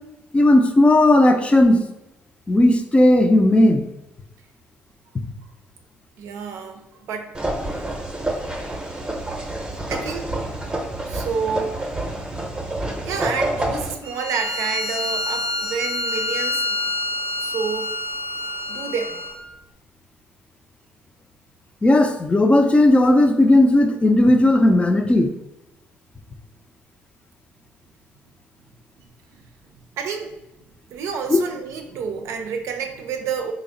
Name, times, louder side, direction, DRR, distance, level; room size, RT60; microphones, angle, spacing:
voice 1, 0.3-1.8 2.5-3.8 21.8-25.3, left 1 dB, 25° left, 5 dB, 0.4 m, -15 dB
voice 2, 6.2-7.4 9.9-10.3 11.1-11.9 13.0-16.8 17.4-17.9 18.7-19.2 29.0-29.1 29.3-29.5 29.9-30.3 30.9-33.5, right 6 dB, 80° right, 5 dB, 0.4 m, -29 dB
sound 1, 7.3-13.9, right 1 dB, 15° right, 0.7 m, -28 dB
Bowed string instrument, 14.0-19.4, left 1 dB, 80° left, 0.8 m, -27 dB
3.4 x 2.0 x 3.7 m, 0.94 s
supercardioid pair, 75°, 5 cm